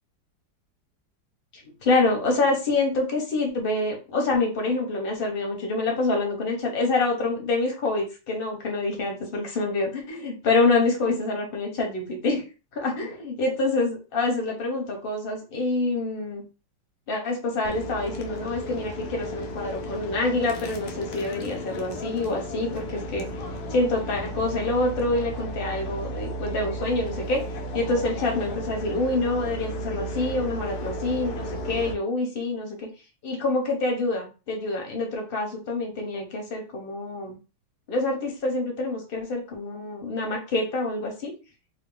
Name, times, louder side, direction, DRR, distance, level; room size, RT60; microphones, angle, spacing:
voice 1, 1.8-12.4 12.7-16.4 17.1-23.3 23.7-27.4 27.7-32.9 33.2-37.4 37.9-41.3, left 2 dB, 40° left, 1 dB, 0.9 m, -26 dB
sound 1, 17.6-31.9, equal, 70° left, 1.0 m, -34 dB
3.8 x 2.2 x 3.8 m, 0.32 s
omnidirectional pair, 2.1 m